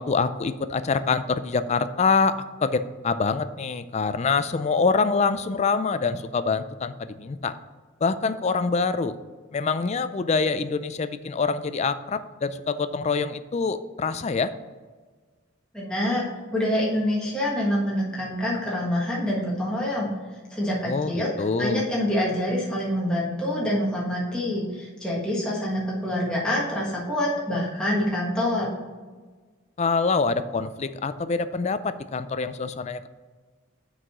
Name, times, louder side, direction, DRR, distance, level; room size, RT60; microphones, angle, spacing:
voice 1, 0.0-7.6 8.0-9.1 9.5-14.5 20.8-21.8 29.8-33.1, left 4 dB, 35° left, 12 dB, 0.4 m, -25 dB
voice 2, 15.7-16.3 16.5-20.1 20.5-21.3 21.6-28.7, left 1 dB, 5° left, -6 dB, 1.4 m, -26 dB
6.1 x 4.8 x 6.7 m, 1.4 s
head